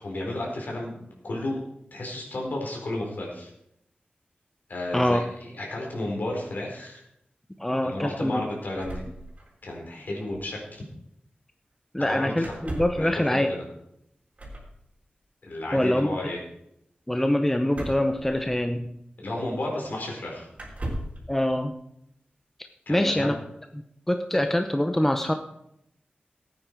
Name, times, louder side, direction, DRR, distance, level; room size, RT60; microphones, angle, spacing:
voice 1, 0.0-1.6 1.9-3.5 4.7-7.0 7.8-9.0 9.6-10.8 12.0-12.6 13.0-13.6 15.4-16.4 19.2-20.5 22.9-23.3 24.3-24.4, left 1 dB, 65° left, -1 dB, 4.3 m, -32 dB
voice 2, 7.6-8.4 11.9-13.5 15.7-16.2 17.1-18.9 21.3-21.7 22.9-23.3 24.1-25.3, left 1 dB, 10° left, 6 dB, 0.7 m, -24 dB
sound 1, 8.7-9.8 10.1-10.2 10.3-10.5 12.4-13.1 14.4-14.7 17.7-18.9 19.7-19.8 20.5-21.2, right 1 dB, 45° right, 3.6 m, -37 dB
16.0 x 9.1 x 4.6 m, 0.77 s
wide cardioid pair, 110°, 3 cm